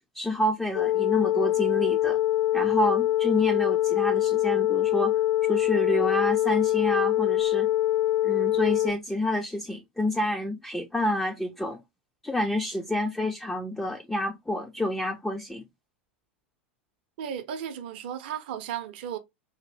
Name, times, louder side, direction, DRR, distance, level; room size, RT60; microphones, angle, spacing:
voice 1, 0.1-2.2 2.5-7.7 8.2-11.8 12.2-15.7, left 1 dB, 5° left, 0.4 m, -28 dB
sound 1, 0.7-8.9, left 13 dB, 55° left, 0.6 m, -24 dB
voice 2, 17.2-19.2, right 9 dB, 55° right, 0.5 m, -35 dB
2.8 x 2.6 x 2.8 m
figure-of-eight pair, 90°, 6 cm